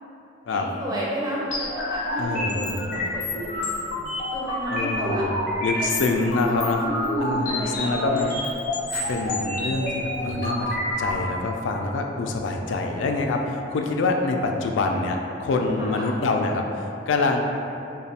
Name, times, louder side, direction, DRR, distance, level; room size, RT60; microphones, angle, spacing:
voice 1, 0.5-5.2 5.7-6.3 6.8-8.3 15.8-16.1, right 1 dB, 20° right, -6 dB, 0.5 m, -32 dB
sound 1, 1.5-11.1, left 1 dB, 45° left, 0.6 m, -28 dB
voice 2, 2.2-3.1 4.7-5.3 5.6-6.8 7.2-8.5 9.1-17.4, left 3 dB, 85° left, 3 dB, 0.3 m, -26 dB
sound 2, 8.9-11.6, right 2 dB, 90° right, 0.5 m, -44 dB
Piano, 10.2-12.4, equal, 55° right, 0.7 m, -38 dB
3.2 x 2.2 x 4.1 m, 2.8 s
head